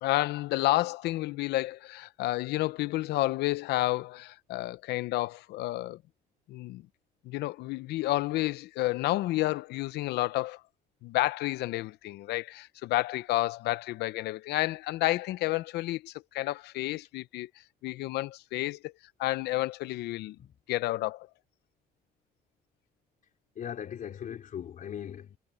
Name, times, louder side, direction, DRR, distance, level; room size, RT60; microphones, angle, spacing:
voice 1, 0.0-6.0 6.5-6.8 7.2-10.6 11.0-17.5 17.8-18.9 19.2-20.4 20.7-21.3, left 17 dB, 80° left, 0.7 m, -30 dB
voice 2, 23.6-25.4, left 9 dB, 50° left, 3.6 m, -39 dB
cardioid pair, 110°, 17 cm